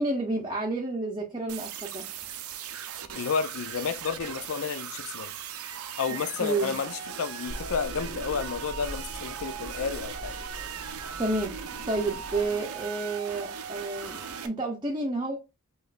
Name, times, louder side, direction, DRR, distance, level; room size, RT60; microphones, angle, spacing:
voice 1, 0.0-2.0 6.4-6.8 11.2-11.6 11.9-15.4, right 2 dB, 20° right, 0.7 m, -30 dB
sound 1, 1.5-14.5, right 8 dB, 70° right, 0.6 m, -38 dB
voice 2, 3.1-5.3 6.0-10.4, left 6 dB, 65° left, 0.5 m, -31 dB
sound 2, 7.5-12.5, equal, 30° left, 2.1 m, -42 dB
5.0 x 3.1 x 2.5 m
head